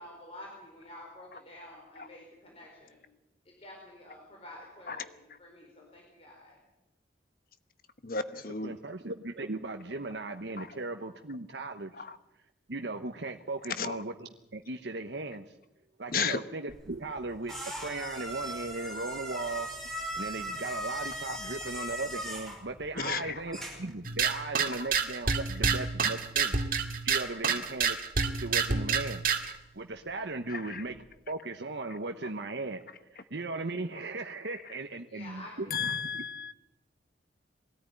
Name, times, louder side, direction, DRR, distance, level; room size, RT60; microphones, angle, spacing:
voice 1, 0.0-3.0 3.4-6.6 27.2-27.5 35.1-36.0, left 1 dB, 30° left, -1 dB, 4.5 m, -49 dB
voice 2, 8.0-8.8 10.6-10.7 12.0-12.2 13.8-14.0 16.1-16.4 21.3-21.4 22.9-23.5 24.8-24.9 30.5-30.8 35.7-36.5, left 5 dB, 50° left, 11 dB, 1.1 m, -34 dB
voice 3, 8.6-11.9 12.7-15.5 16.0-19.7 20.1-28.0 28.3-29.2 29.5-31.0 31.3-32.8 33.1-36.2, right 3 dB, 75° right, 5 dB, 1.1 m, -37 dB
sound 1, 16.7-24.0, equal, 5° left, 5.7 m, -39 dB
sound 2, 24.0-29.5, right 5 dB, 50° right, 2.0 m, -28 dB
21.5 x 14.0 x 9.5 m, 0.91 s
head